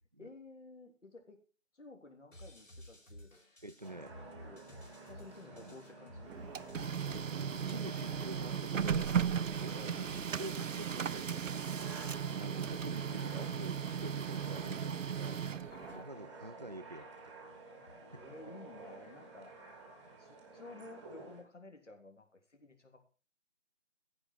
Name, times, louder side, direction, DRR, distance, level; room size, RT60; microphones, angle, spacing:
voice 1, 0.2-1.4 1.7-3.3 4.4-6.4 13.1-13.8 15.7-16.9 17.8-19.6 20.2-23.0, left 3 dB, 70° left, 3.5 m, -54 dB
sound 1, 2.3-10.3, left 1 dB, 90° left, 4.6 m, -54 dB
voice 2, 3.6-4.2 5.5-5.8 6.9-9.1 9.6-15.4 15.9-17.3 20.0-20.1, right 1 dB, 35° right, 0.4 m, -47 dB
sound 2, 3.8-21.4, right 3 dB, 5° right, 1.2 m, -52 dB
Printer, 6.3-16.0, right 7 dB, 85° right, 0.6 m, -36 dB
15.0 x 5.3 x 6.2 m
figure-of-eight pair, 160°, 37 cm